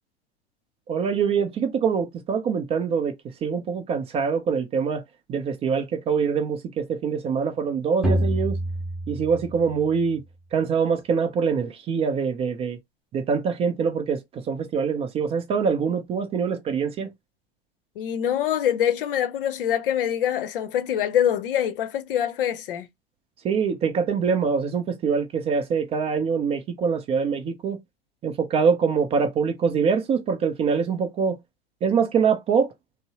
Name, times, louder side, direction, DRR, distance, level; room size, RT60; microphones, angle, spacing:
voice 1, 0.9-3.1 3.4-5.0 5.3-8.6 9.1-10.2 10.5-12.8 13.1-14.2 14.5-17.1 23.4-27.8 28.2-31.4 31.8-32.7, right 6 dB, 20° right, 0.5 m, -24 dB
sound 1, 8.0-10.0, equal, ahead, 1.2 m, -26 dB
voice 2, 18.0-22.9, left 10 dB, 55° left, 0.7 m, -24 dB
5.2 x 2.0 x 2.8 m
figure-of-eight pair, 90°, 32 cm